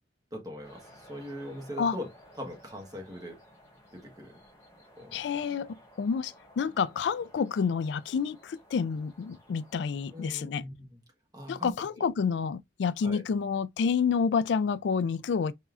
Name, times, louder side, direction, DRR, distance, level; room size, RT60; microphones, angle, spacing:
voice 1, 0.3-2.1 2.4-3.4 3.9-4.4 5.0-5.3 10.1-11.0 11.3-12.1 13.0-13.2, equal, 20° right, 1.3 m, -41 dB
sound 1, 0.6-10.4, equal, 15° left, 1.7 m, -56 dB
voice 2, 5.1-10.6 11.5-15.5, left 6 dB, 75° left, 0.3 m, -29 dB
4.1 x 3.6 x 2.4 m
head